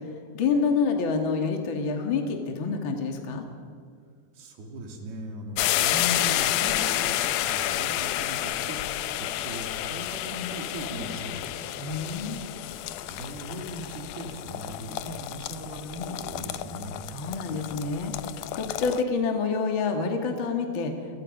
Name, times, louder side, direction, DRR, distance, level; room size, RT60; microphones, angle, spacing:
voice 1, 0.3-3.5 11.8-12.4 17.1-21.2, left 4 dB, 40° left, 3 dB, 2.3 m, -28 dB
voice 2, 4.3-11.6 13.0-17.0, equal, 80° right, 2 dB, 4.6 m, -38 dB
sound 1, 5.6-19.0, left 14 dB, 85° left, 1.8 m, -30 dB
29.5 x 23.0 x 5.4 m, 2.1 s
omnidirectional pair, 4.4 m